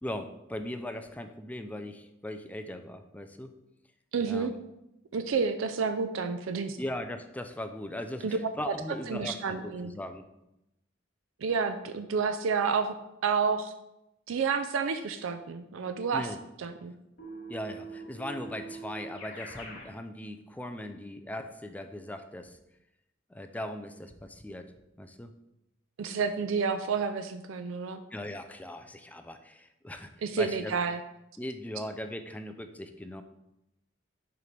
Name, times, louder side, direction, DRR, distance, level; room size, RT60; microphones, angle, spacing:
voice 1, 0.0-3.5 4.2-4.5 6.8-10.2 16.1-16.4 17.5-22.6 23.3-24.7 25.0-25.3 28.1-30.1 30.4-30.8 31.4-33.2, left 1 dB, 10° left, 7 dB, 0.4 m, -39 dB
voice 2, 4.1-4.5 5.1-6.8 8.2-8.4 9.1-9.9 11.4-12.9 13.2-13.7 14.3-16.3 16.6-16.9 26.0-28.0 30.2-31.0, right 5 dB, 75° right, 9 dB, 0.4 m, -30 dB
Keyboard (musical), 17.2-19.9, right 3 dB, 75° left, 2.5 m, -43 dB
6.8 x 3.2 x 5.1 m, 0.89 s
head